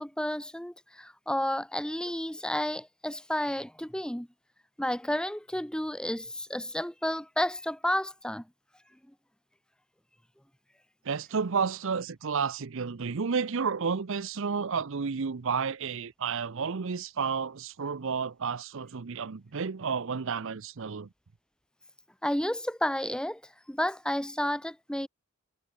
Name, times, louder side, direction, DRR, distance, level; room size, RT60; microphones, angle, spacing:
voice 1, 0.0-4.3 4.8-8.4 22.2-23.4 23.7-25.1, left 1 dB, 5° left, 1.2 m, -31 dB
voice 2, 11.0-21.1, right 5 dB, 65° right, 0.6 m, -31 dB
head